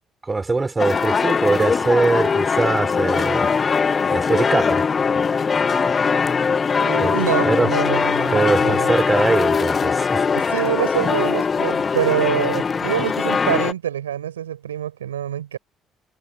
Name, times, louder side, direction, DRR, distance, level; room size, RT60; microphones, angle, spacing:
voice 1, 0.2-3.5 4.1-4.9 7.0-7.1 7.4-7.7 8.3-10.2, right 3 dB, 25° right, 5.0 m, -21 dB
sound 1, 0.8-13.7, left 5 dB, 35° left, 0.6 m, -21 dB
voice 2, 6.8-8.9 10.3-15.6, right 10 dB, 80° right, 5.2 m, -25 dB
figure-of-eight pair, 50°, 0 cm